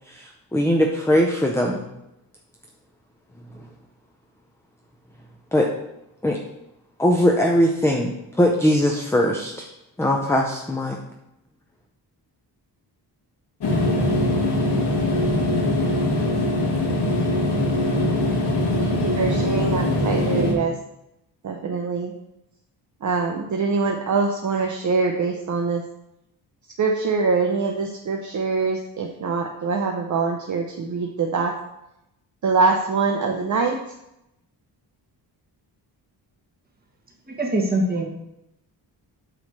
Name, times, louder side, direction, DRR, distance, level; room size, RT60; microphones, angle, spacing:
voice 1, 0.1-1.9 3.5-3.7 5.5-5.7 6.2-6.4 7.0-9.7 10.0-11.0, equal, 5° left, 1 dB, 0.5 m, -20 dB
sound 1, 13.6-20.5, left 1 dB, 70° left, 1.7 m, -22 dB
voice 2, 18.8-20.7 21.4-22.1 23.0-25.8 26.8-31.5 32.4-33.8, right 4 dB, 45° right, 2 dB, 0.7 m, -24 dB
voice 3, 37.3-38.0, right 1 dB, 20° right, -1 dB, 1.5 m, -23 dB
8.7 x 3.2 x 6.4 m, 0.86 s
wide cardioid pair, 155°, 41 cm